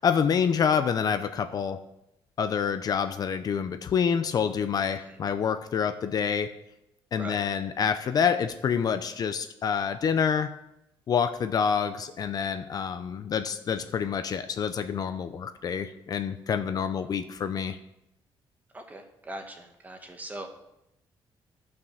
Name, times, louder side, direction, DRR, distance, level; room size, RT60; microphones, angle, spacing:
voice 1, 0.0-1.8 2.4-6.5 7.1-10.5 11.1-17.8, left 7 dB, 45° left, 10 dB, 0.6 m, -27 dB
voice 2, 18.7-20.6, right 1 dB, 20° right, 4 dB, 1.4 m, -41 dB
12.0 x 6.0 x 6.4 m, 0.85 s
cardioid pair, 145°, 9 cm